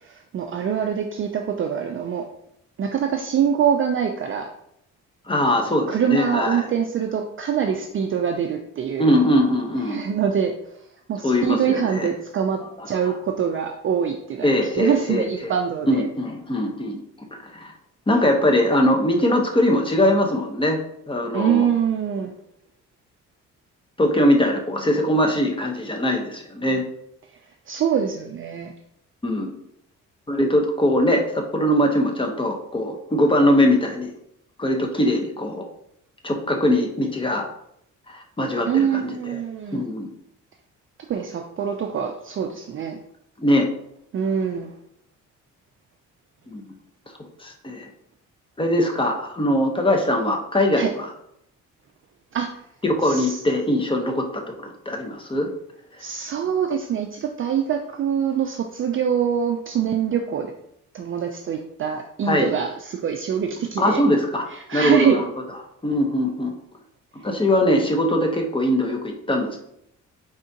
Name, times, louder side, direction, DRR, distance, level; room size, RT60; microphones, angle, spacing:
voice 1, 0.0-2.2 2.8-4.5 5.9-9.1 9.9-10.5 11.1-14.5 14.8-16.0 21.3-22.3 27.7-28.7 38.7-39.8 41.1-43.0 44.1-44.7 50.8-50.9 52.3-52.5 53.0-53.4 56.0-60.5 60.9-64.0 64.5-65.2, right 8 dB, 45° right, 4 dB, 0.4 m, -24 dB
voice 2, 5.3-6.7 9.0-10.0 11.2-12.1 12.6-13.1 14.4-15.5 15.9-17.0 17.3-17.7 18.1-20.8 21.1-21.7 24.0-26.8 29.2-29.5 30.3-34.1 34.6-35.7 36.2-37.5 38.1-39.4 39.7-40.1 43.4-43.7 46.5-46.7 47.4-47.9 48.6-51.1 52.8-55.5 62.3-62.5 63.8-64.4 64.7-65.3 65.8-66.5 67.1-69.6, left 1 dB, 15° left, 3 dB, 0.9 m, -21 dB
4.8 x 3.6 x 2.8 m, 0.74 s
cardioid pair, 90°, 30 cm